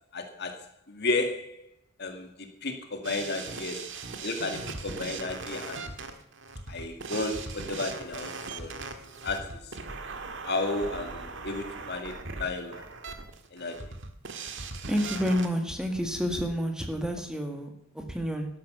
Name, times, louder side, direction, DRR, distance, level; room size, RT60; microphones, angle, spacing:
voice 1, 0.1-0.6 0.9-1.6 2.0-2.3 2.6-3.8 4.2-5.8 6.7-8.7 9.2-9.6 10.4-12.8 13.5-13.8, left 2 dB, 55° left, 6 dB, 2.1 m, -33 dB
sound 1, 3.0-15.5, right 4 dB, 60° right, 1.8 m, -39 dB
voice 2, 14.9-18.5, equal, 5° right, 4 dB, 1.9 m, -29 dB
13.0 x 12.0 x 6.8 m, 0.70 s
head